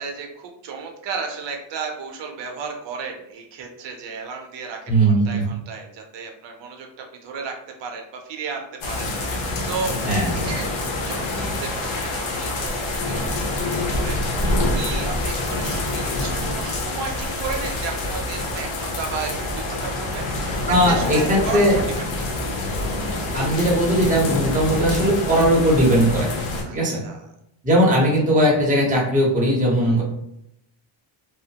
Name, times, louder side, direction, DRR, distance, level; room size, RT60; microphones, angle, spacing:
voice 1, 0.0-7.5 7.8-10.7 11.1-13.6 13.9-20.6 20.9-21.7 22.0-22.4 26.6-27.3 29.8-30.0, right 5 dB, 60° right, 3 dB, 0.7 m, -34 dB
voice 2, 4.9-5.4 10.0-10.3 20.7-21.8 23.3-26.3 26.7-27.0 27.6-30.0, equal, 15° right, -4 dB, 0.8 m, -18 dB
sound 1, 8.8-26.6, left 2 dB, 80° left, 0.8 m, -26 dB
2.8 x 2.0 x 2.8 m, 0.78 s
cardioid pair, 140°, 49 cm